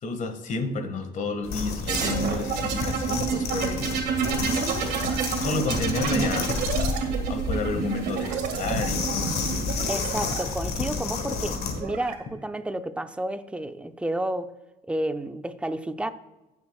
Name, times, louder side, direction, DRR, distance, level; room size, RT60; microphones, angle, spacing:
voice 1, 0.0-3.9 5.3-6.5 7.3-9.4, left 3 dB, 50° left, 6 dB, 1.8 m, -30 dB
sound 1, 1.4-11.8, left 4 dB, 70° left, 1.6 m, -31 dB
sound 2, 1.9-10.4 11.5-12.1, right 6 dB, 85° right, 1.9 m, -29 dB
Fire, 5.2-10.2, left 2 dB, 25° left, 2.6 m, -44 dB
voice 2, 9.9-14.5 14.9-16.1, right 1 dB, 5° right, 9 dB, 0.6 m, -31 dB
16.5 x 7.0 x 2.4 m, 1.0 s
cardioid pair, 110°, 17 cm